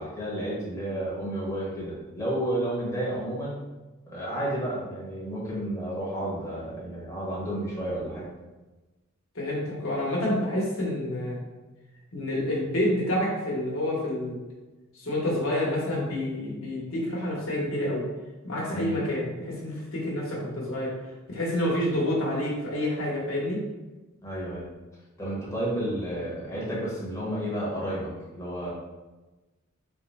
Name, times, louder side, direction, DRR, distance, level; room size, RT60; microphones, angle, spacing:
voice 1, 0.0-3.6 4.1-8.3 18.7-19.0 24.2-24.7 25.2-28.7, right 1 dB, 15° left, -7 dB, 1.0 m, -31 dB
voice 2, 9.3-11.4 12.1-14.4 14.9-18.0 18.4-20.9 21.3-23.6, left 1 dB, 85° left, -4 dB, 1.2 m, -28 dB
3.5 x 2.2 x 4.0 m, 1.1 s
head